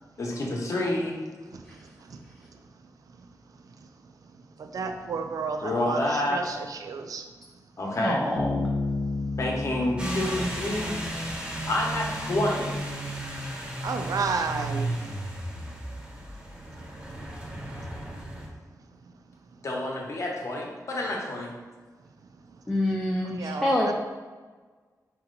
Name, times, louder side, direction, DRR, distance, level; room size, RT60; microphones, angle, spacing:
voice 1, 0.2-1.1 5.6-6.4 7.8-8.2 9.4-10.9 11.7-12.8 19.6-21.5, left 1 dB, 50° left, -1 dB, 0.9 m, -28 dB
voice 2, 4.6-7.3 13.8-14.9 23.2-23.9, right 4 dB, 65° right, 6 dB, 0.4 m, -31 dB
voice 3, 8.0-8.6 22.7-23.9, left 1 dB, 10° left, -3 dB, 0.5 m, -26 dB
Bass guitar, 8.4-11.9, left 3 dB, 75° left, 0.9 m, -32 dB
sound 1, 10.0-18.5, right 1 dB, 15° right, 0.8 m, -34 dB
4.4 x 3.0 x 3.8 m, 1.4 s
wide cardioid pair, 145°, 7 cm